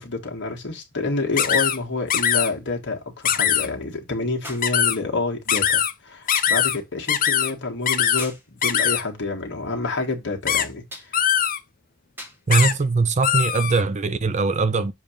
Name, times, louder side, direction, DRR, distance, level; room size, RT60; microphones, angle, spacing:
voice 1, 0.0-10.8, left 3 dB, 55° left, 1.7 m, -28 dB
sound 1, 1.4-1.8 2.1-2.5 3.3-3.7 4.6-5.0 5.5-5.9 6.3-6.8 7.1-7.5 7.9-8.3 8.6-9.0 10.5-10.7 11.1-11.6 12.5-12.7 13.2-13.8, left 9 dB, 40° left, 0.6 m, -21 dB
sound 2, 4.4-4.8 6.3-6.7 8.2-8.5 10.9-11.2 12.2-12.5 13.5-13.6, equal, 10° right, 1.5 m, -39 dB
voice 2, 12.5-14.9, right 4 dB, 30° right, 0.5 m, -21 dB
7.2 x 2.9 x 5.0 m
head